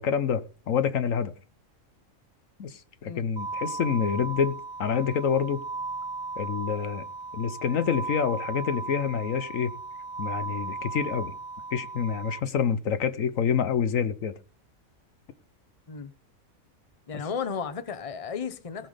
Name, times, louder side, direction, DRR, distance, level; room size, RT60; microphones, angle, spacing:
voice 1, 0.0-1.3 2.6-5.6 6.4-7.1 7.3-9.7 10.2-11.3 11.7-14.3, left 7 dB, 70° left, 1.3 m, -27 dB
sound 1, 3.4-12.4, right 3 dB, 30° right, 0.5 m, -36 dB
voice 2, 17.1-18.9, left 6 dB, 30° left, 0.9 m, -34 dB
18.0 x 6.0 x 5.0 m
omnidirectional pair, 1.4 m